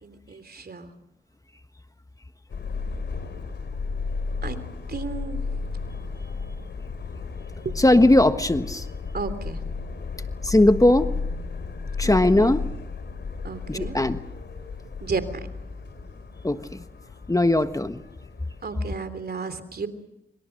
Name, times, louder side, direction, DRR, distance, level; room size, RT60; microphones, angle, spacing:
voice 1, 0.0-0.9 4.4-4.6 4.9-5.8 7.6-7.8 9.1-9.6 12.0-12.5 13.4-14.0 15.0-15.3 18.6-19.9, right 4 dB, 55° right, 11 dB, 3.3 m, -33 dB
Subway metro underground, 2.5-18.6, left 4 dB, 65° left, 3.7 m, -33 dB
voice 2, 7.8-8.8 10.4-11.1 12.0-12.6 13.7-14.2 16.4-16.6 17.3-18.0, left 1 dB, 15° left, 10 dB, 1.4 m, -19 dB
25.5 x 25.0 x 6.6 m, 0.87 s
supercardioid pair, 45°, 19 cm